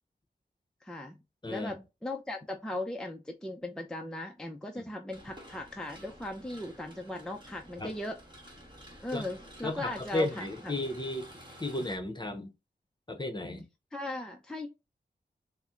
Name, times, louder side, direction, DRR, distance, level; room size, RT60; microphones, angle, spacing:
voice 1, 0.8-1.2 1.5-8.2 9.0-10.7 13.9-14.7, left 1 dB, 5° left, 0.5 m, -38 dB
sound 1, 5.1-12.0, equal, 25° right, 1.4 m, -51 dB
voice 2, 9.6-11.3 11.6-12.5 13.1-13.7, left 2 dB, 25° left, 0.9 m, -34 dB
4.2 x 2.1 x 3.7 m
cardioid pair, 55°, 18 cm